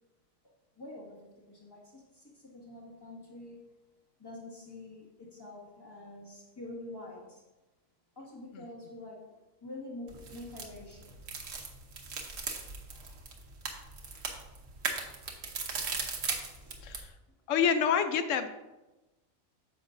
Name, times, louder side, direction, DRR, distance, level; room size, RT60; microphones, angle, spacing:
voice 1, 0.8-1.2 1.5-3.6 4.2-7.4 8.2-9.3 9.6-11.1 15.7-15.9 16.6-16.9, left 2 dB, 15° left, -4 dB, 1.8 m, -46 dB
sound 1, 10.1-17.1, right 4 dB, 70° right, 1.4 m, -38 dB
voice 2, 17.5-18.5, left 7 dB, 70° left, 9 dB, 1.0 m, -27 dB
9.8 x 7.0 x 2.6 m, 1.0 s
omnidirectional pair, 1.4 m